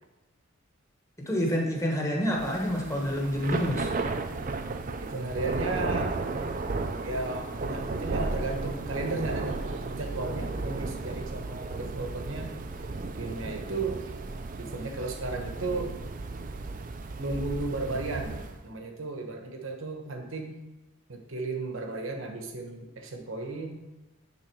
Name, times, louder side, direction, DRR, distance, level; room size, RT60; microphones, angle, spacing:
voice 1, 1.2-3.9, equal, 15° left, -1 dB, 1.2 m, -28 dB
Thunder / Rain, 2.3-18.6, right 3 dB, 40° right, 0.4 m, -34 dB
voice 2, 5.0-6.1 7.0-12.6 13.2-14.1 14.6-15.9 17.2-20.6 21.1-23.8, right 3 dB, 70° right, 3 dB, 1.1 m, -34 dB
10.5 x 3.8 x 4.6 m, 1.0 s
head